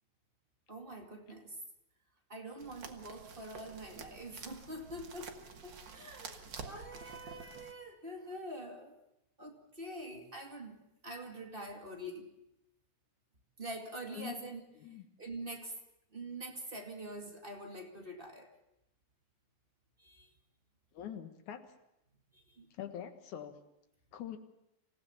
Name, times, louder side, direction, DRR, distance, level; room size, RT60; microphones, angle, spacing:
voice 1, 0.7-1.6 2.3-5.4 5.6-8.9 9.4-10.8 11.0-12.3 13.6-14.6 14.9-15.7 16.1-18.5 20.0-20.3 22.3-22.7, right 1 dB, 20° right, 2 dB, 2.1 m, -45 dB
sound 1, 2.6-7.7, right 5 dB, 45° right, 1.8 m, -49 dB
voice 2, 20.9-21.7 22.8-23.5 24.1-24.4, left 10 dB, 85° left, 7 dB, 3.0 m, -43 dB
26.5 x 16.0 x 7.1 m, 0.84 s
omnidirectional pair, 3.4 m